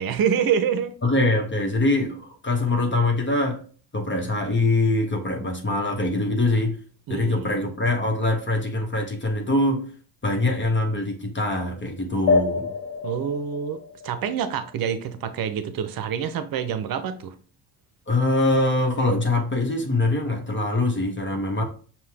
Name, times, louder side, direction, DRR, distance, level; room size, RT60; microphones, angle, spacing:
voice 1, 0.0-0.9 7.1-7.7 13.0-13.8 14.0-17.3, right 8 dB, 55° right, 0.7 m, -26 dB
voice 2, 1.0-3.6 3.9-6.8 7.1-9.9 10.2-12.7 18.1-21.6, left 2 dB, 25° left, 1.1 m, -23 dB
sound 1, 12.3-15.2, left 4 dB, 75° left, 1.0 m, -27 dB
5.6 x 2.3 x 3.4 m
hypercardioid pair, 55°, 42 cm